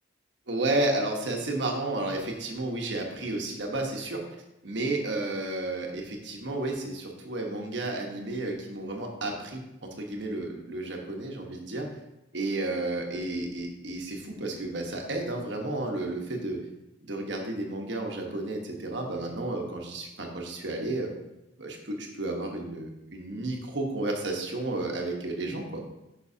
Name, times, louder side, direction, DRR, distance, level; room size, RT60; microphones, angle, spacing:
voice 1, 0.5-4.2 4.6-11.9 12.3-16.6 17.0-21.1 21.6-25.8, right 2 dB, 65° right, 1 dB, 1.2 m, -32 dB
9.3 x 6.1 x 2.8 m, 0.92 s
head